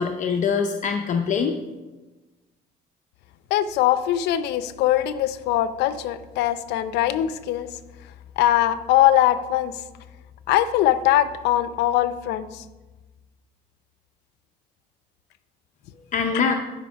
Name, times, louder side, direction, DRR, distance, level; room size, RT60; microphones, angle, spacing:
voice 1, 0.0-1.6 16.1-16.5, left 6 dB, 45° left, 3 dB, 0.7 m, -23 dB
voice 2, 3.5-7.7 8.4-9.7 10.5-12.6, left 12 dB, 85° left, 13 dB, 0.6 m, -21 dB
11.0 x 5.2 x 5.2 m, 1.2 s
cardioid pair, 110°, 17 cm